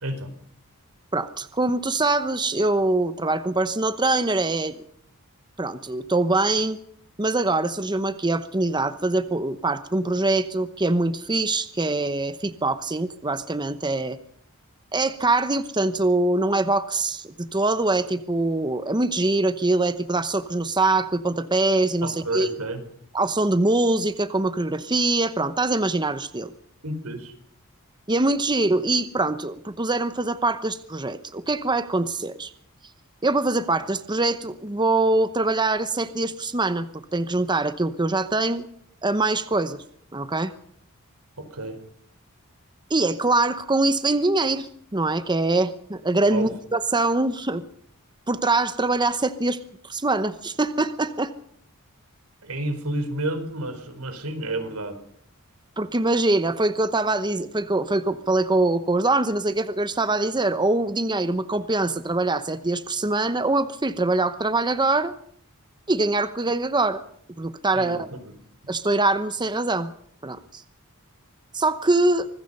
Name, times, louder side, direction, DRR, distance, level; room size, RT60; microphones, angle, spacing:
voice 1, 0.0-0.3 22.0-22.8 26.8-27.3 41.4-41.8 46.3-46.5 52.4-55.0 67.7-68.3, right 1 dB, 80° right, 8 dB, 4.5 m, -30 dB
voice 2, 1.1-4.8 5.6-6.8 7.2-14.2 14.9-22.5 23.1-26.5 28.1-32.5 33.2-38.7 39.0-39.8 40.1-40.5 42.9-47.6 48.3-51.3 55.8-65.1 65.9-67.0 67.4-68.1 68.7-69.9 70.2-70.6 71.5-72.3, right 2 dB, 20° right, 11 dB, 0.9 m, -23 dB
25.0 x 20.5 x 5.5 m, 0.66 s
head